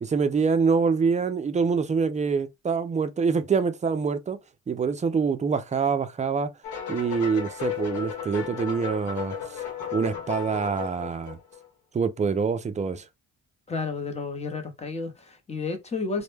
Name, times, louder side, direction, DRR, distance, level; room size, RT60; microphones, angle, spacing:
voice 1, 0.0-4.4 4.7-6.5 6.9-9.3 9.9-11.4 11.9-13.0, right 5 dB, 25° right, 0.4 m, -25 dB
sound 1, 6.6-11.7, left 8 dB, 80° left, 0.9 m, -34 dB
voice 2, 13.7-16.2, left 4 dB, 20° left, 0.7 m, -31 dB
2.1 x 2.1 x 3.1 m
cardioid pair, 90°, 30 cm